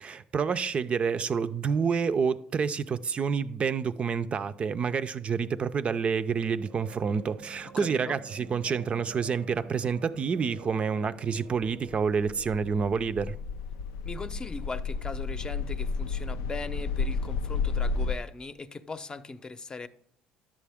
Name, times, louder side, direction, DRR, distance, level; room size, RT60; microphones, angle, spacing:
voice 1, 0.0-13.3, right 6 dB, 40° right, 0.5 m, -28 dB
sound 1, 5.4-12.8, right 6 dB, 80° right, 0.8 m, -49 dB
voice 2, 7.8-8.2 14.0-19.9, left 3 dB, 25° left, 0.7 m, -39 dB
sound 2, 11.6-18.2, left 4 dB, 90° left, 0.4 m, -32 dB
11.0 x 7.4 x 3.5 m
supercardioid pair, 75°, 3 cm